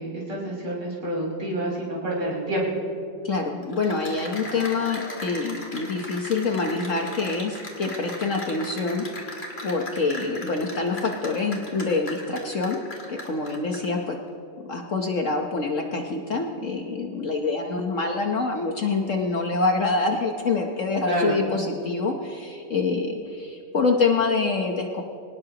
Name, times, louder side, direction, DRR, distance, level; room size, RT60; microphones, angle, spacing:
voice 1, 0.0-2.7 21.1-21.4, right 1 dB, 80° right, -6 dB, 6.0 m, -28 dB
voice 2, 3.2-9.4 9.6-12.8 13.1-14.2 14.7-25.0, left 3 dB, 50° left, 2 dB, 1.2 m, -26 dB
Cheering / Applause, 3.6-14.0, left 2 dB, 35° left, 2.2 m, -38 dB
25.0 x 18.0 x 2.9 m, 2.5 s
omnidirectional pair, 1.9 m